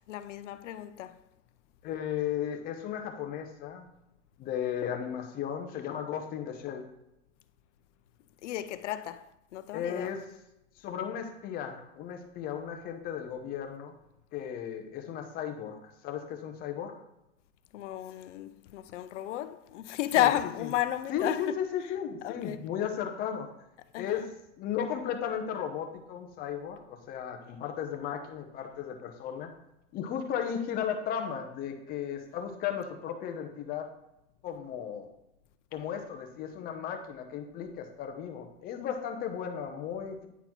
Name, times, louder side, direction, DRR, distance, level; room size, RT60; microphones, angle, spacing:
voice 1, 0.1-1.2 8.4-10.1 17.7-21.6 22.2-22.6 23.9-24.3, left 13 dB, 85° left, 0.6 m, -32 dB
voice 2, 1.8-3.9 4.4-6.8 9.7-10.3 10.8-14.0 14.3-15.8 16.0-16.9 20.2-20.3 20.6-20.7 21.1-23.5 24.0-24.3 24.6-29.5 29.9-33.9 34.4-35.1 35.7-40.3, left 8 dB, 25° left, 0.8 m, -35 dB
9.4 x 4.1 x 4.4 m
supercardioid pair, 155°, 35 cm